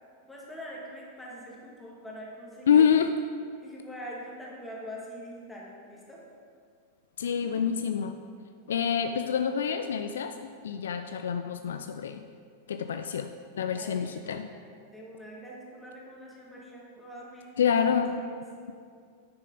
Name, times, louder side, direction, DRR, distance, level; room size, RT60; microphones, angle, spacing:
voice 1, 0.2-2.8 3.6-6.2 13.7-14.2 14.5-17.8 18.2-18.4, equal, 5° left, -4 dB, 1.9 m, -44 dB
voice 2, 2.7-3.1 7.2-8.1 8.7-10.3 10.6-12.2 12.7-14.5 17.6-18.1, left 7 dB, 65° left, 7 dB, 0.3 m, -26 dB
9.6 x 6.4 x 3.9 m, 2.2 s
figure-of-eight pair, 90°, 0 cm